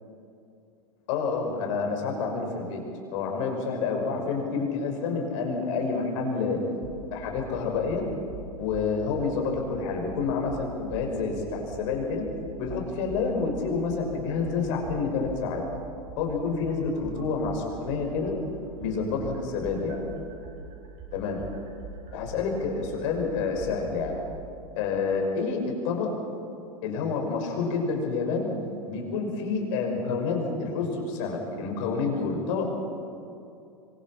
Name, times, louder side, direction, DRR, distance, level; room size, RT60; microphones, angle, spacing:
voice 1, 1.1-2.8 3.1-6.6 7.1-8.0 8.6-12.2 12.6-15.6 16.2-18.3 18.8-20.0 21.1-21.4 22.1-24.2 24.8-26.1 26.8-28.5 28.8-32.7, left 4 dB, 55° left, 1 dB, 5.7 m, -28 dB
sound 1, 6.8-7.0 7.3-7.5 7.9-9.2 9.5-9.7 10.1-11.3 11.7-11.9 12.3-13.5 13.9-17.9 18.2-24.2, right 5 dB, 40° right, 7.2 m, -42 dB
27.0 x 23.0 x 5.9 m, 2.6 s
figure-of-eight pair, 90°, 19 cm